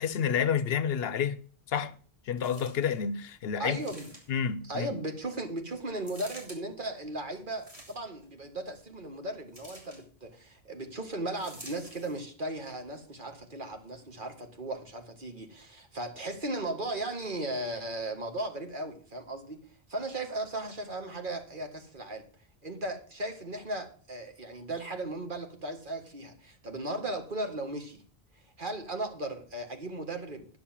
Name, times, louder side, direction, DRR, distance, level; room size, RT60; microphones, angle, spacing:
voice 1, 0.0-2.0 2.3-3.8 4.3-5.0, left 7 dB, 75° left, 0.9 m, -30 dB
sound 1, 2.4-3.0 3.8-4.5 6.0-6.6 7.5-8.2 9.5-10.0 11.4-12.2 12.9-13.0, right 1 dB, 35° right, 3.3 m, -49 dB
voice 2, 3.6-4.1 4.6-19.6 19.9-22.2 22.6-28.0 28.6-30.5, right 1 dB, 55° right, 1.9 m, -36 dB
9.9 x 6.6 x 7.2 m
omnidirectional pair, 1.0 m